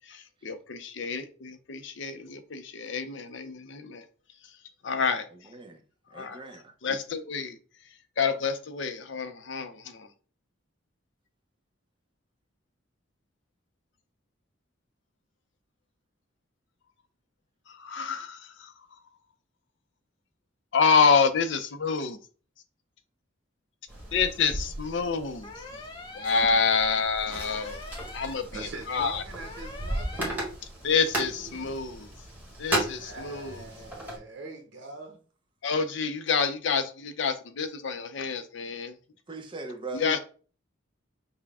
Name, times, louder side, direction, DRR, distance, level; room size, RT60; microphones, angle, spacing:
voice 1, 0.4-4.0 4.8-5.3 6.1-6.5 6.8-7.6 8.2-10.1 17.8-18.7 20.7-22.2 24.1-25.5 26.1-27.8 28.1-28.4 28.9-29.2 30.8-32.1 32.6-33.6 35.6-38.9 39.9-40.2, left 5 dB, 70° left, 0.5 m, -27 dB
voice 2, 5.3-5.8 6.1-6.7 25.7-25.8 39.3-40.2, right 3 dB, 25° right, 0.7 m, -40 dB
sound 1, 23.9-34.2, right 1 dB, 10° right, 1.5 m, -36 dB
sound 2, 25.4-26.3 27.4-28.3 29.4-30.3, left 2 dB, 25° left, 0.7 m, -43 dB
voice 3, 28.5-30.4 33.0-35.2, right 3 dB, 65° right, 0.9 m, -42 dB
5.9 x 2.1 x 3.5 m
head